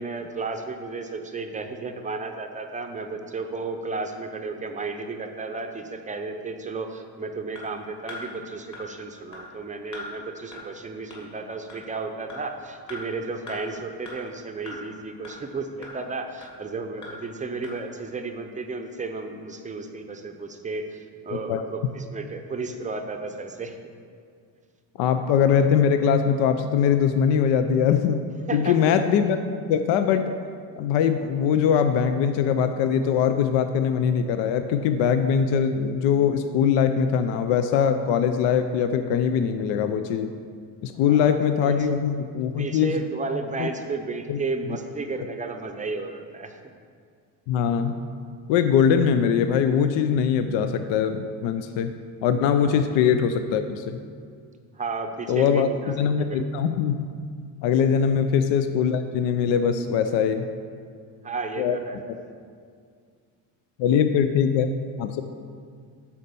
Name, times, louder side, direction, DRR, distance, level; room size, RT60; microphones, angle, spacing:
voice 1, 0.0-23.7 28.5-28.8 40.9-41.9 42.6-46.6 52.7-52.8 54.8-56.7 58.0-58.1 61.2-62.0, right 3 dB, 20° right, 5 dB, 0.5 m, -33 dB
sound 1, 7.5-7.6 8.1-8.2 8.7-8.8 9.3-9.4 9.9-10.1 10.5-10.6 11.1-11.2 11.7-11.8 12.3-12.4 12.9-13.0 13.5-13.6 14.1-14.2 14.7-14.8 15.2-15.3 15.8-15.9 16.4-16.5 17.0-17.1 17.6-17.7, left 3 dB, 45° left, 2.5 m, -39 dB
voice 2, 25.0-28.2 28.5-29.4 29.7-30.3 30.8-40.3 40.8-43.0 43.6-43.7 44.3-44.4 47.5-48.0 48.5-51.9 52.2-54.0 55.3-57.0 57.6-60.5 61.6-61.8 63.8-65.2, left 7 dB, 85° left, 8 dB, 0.6 m, -22 dB
9.7 x 4.3 x 6.8 m, 2.1 s
cardioid pair, 135°, 42 cm